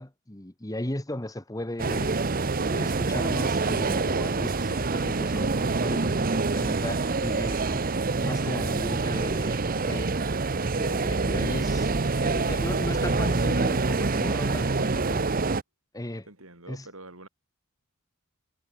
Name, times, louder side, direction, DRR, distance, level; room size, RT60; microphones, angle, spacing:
voice 1, 0.0-2.2 2.5-7.8 8.2-10.1 10.7-11.9 12.2-15.3 15.9-16.3 16.7-16.9, left 1 dB, 15° left, 1.4 m, -36 dB
sound 1, 1.8-15.6, right 3 dB, 40° right, 0.9 m, -26 dB
voice 2, 16.2-17.3, right 2 dB, 65° right, 7.8 m, -45 dB
head